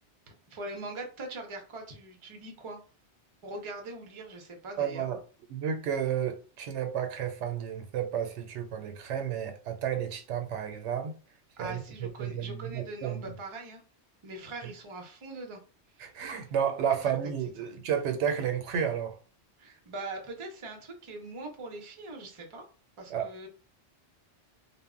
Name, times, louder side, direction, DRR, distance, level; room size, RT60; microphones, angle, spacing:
voice 1, 0.5-2.8 3.4-5.1 11.6-13.8 14.2-15.6 15.9-16.1 16.9-17.0 19.6-22.6 23.0-23.5, right 2 dB, 35° right, 0.5 m, -41 dB
voice 2, 4.8-5.2 5.5-11.2 11.6-13.3 16.0-19.2 23.1-23.5, right 8 dB, 85° right, 0.9 m, -32 dB
2.1 x 2.0 x 3.5 m
omnidirectional pair, 1.2 m